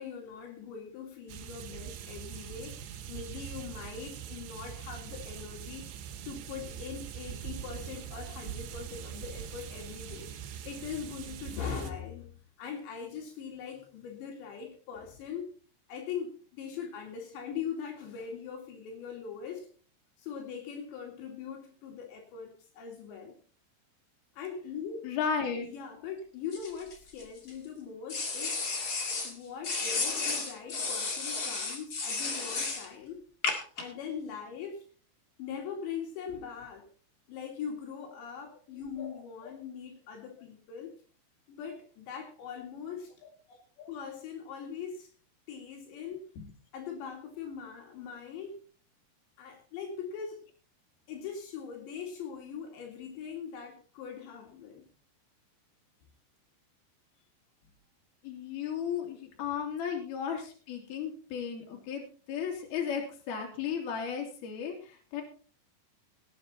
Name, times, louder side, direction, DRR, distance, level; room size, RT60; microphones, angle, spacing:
voice 1, 0.0-5.9 6.3-10.3 10.7-12.3 12.6-15.5 15.9-19.7 20.2-23.4 24.4-25.1 25.6-28.6 29.2-33.3 33.8-34.9 35.4-36.9 37.3-41.0 41.5-43.1 43.9-45.1 45.5-46.2 46.7-48.6 49.4-50.4 51.1-54.8, left 7 dB, 80° left, 1 dB, 4.5 m, -41 dB
sound 1, 1.3-11.9, right 9 dB, 90° right, 3.5 m, -42 dB
voice 2, 25.0-25.7 39.0-39.1 43.8-43.9 46.4-46.5 58.2-64.7 65.1-65.2, left 7 dB, 60° left, 1 dB, 4.4 m, -34 dB
sound 2, 26.5-27.5 28.1-29.3 29.6-32.9 33.4-33.8, left 4 dB, 35° left, 1.6 m, -33 dB
18.0 x 9.2 x 4.2 m, 0.39 s
omnidirectional pair, 5.1 m